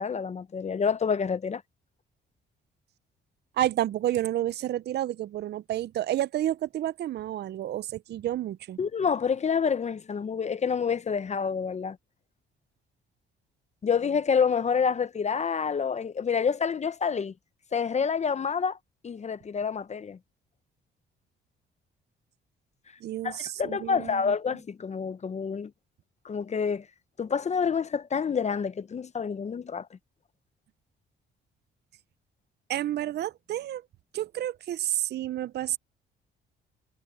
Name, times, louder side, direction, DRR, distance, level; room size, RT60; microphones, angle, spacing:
voice 1, 0.0-1.6 8.8-12.0 13.8-17.3 17.7-18.8 19.0-20.2 23.2-25.7 26.2-26.9 27.2-29.9, left 6 dB, 35° left, 0.7 m, -28 dB
voice 2, 3.6-8.8 23.0-24.3 32.7-33.8 34.1-35.8, right 13 dB, 55° right, 0.5 m, -30 dB
cardioid pair, 90°, 20 cm